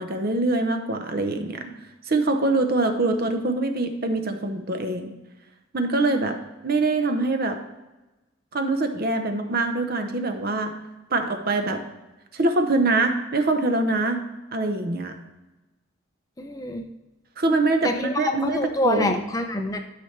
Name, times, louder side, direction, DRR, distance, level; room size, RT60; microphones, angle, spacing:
voice 1, 0.0-1.7 2.1-5.1 5.7-6.4 6.6-7.6 8.5-10.7 11.1-11.8 12.3-14.2 14.5-15.2 17.4-18.6 18.8-19.1, right 2 dB, 45° right, 6 dB, 0.8 m, -24 dB
voice 2, 16.4-16.8 17.8-19.8, left 1 dB, 15° left, 5 dB, 0.5 m, -26 dB
12.0 x 5.8 x 3.2 m, 1.1 s
head